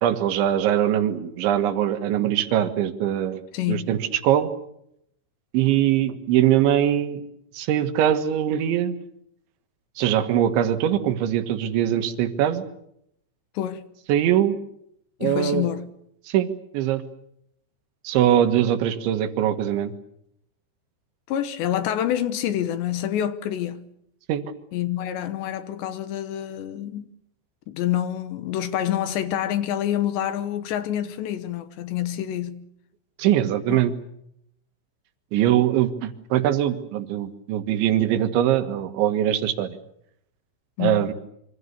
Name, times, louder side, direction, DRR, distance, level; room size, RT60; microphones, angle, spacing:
voice 1, 0.0-4.5 5.5-7.2 7.5-9.0 10.0-12.6 14.1-14.6 15.2-15.7 16.3-16.5 16.7-17.0 18.0-19.9 24.3-24.4 33.2-33.9 35.3-39.7 40.8-41.1, right 11 dB, 70° right, 3.7 m, -22 dB
voice 2, 3.5-3.9 13.5-13.9 15.2-15.9 21.3-23.9 24.7-27.1 27.7-32.6 33.7-33.8 40.8-41.1, left 11 dB, 70° left, 3.0 m, -27 dB
26.5 x 25.5 x 6.9 m
omnidirectional pair, 5.8 m